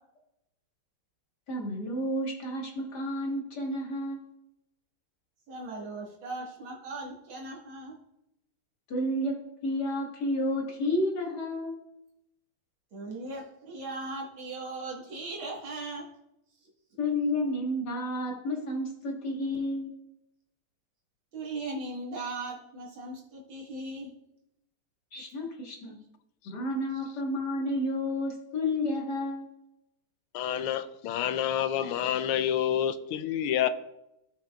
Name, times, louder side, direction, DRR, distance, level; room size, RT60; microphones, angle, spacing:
voice 1, 1.5-4.2 8.9-9.3 9.6-11.8 17.0-19.9 25.1-26.0 26.5-29.5, left 1 dB, 50° left, -1 dB, 2.1 m, -31 dB
voice 2, 5.5-8.0 12.9-16.1 21.3-24.1 25.4-25.5 25.8-25.9, right 2 dB, 70° right, -3 dB, 2.3 m, -38 dB
voice 3, 30.3-33.7, left 10 dB, 85° left, 11 dB, 1.5 m, -28 dB
16.0 x 5.8 x 2.3 m, 0.86 s
omnidirectional pair, 2.4 m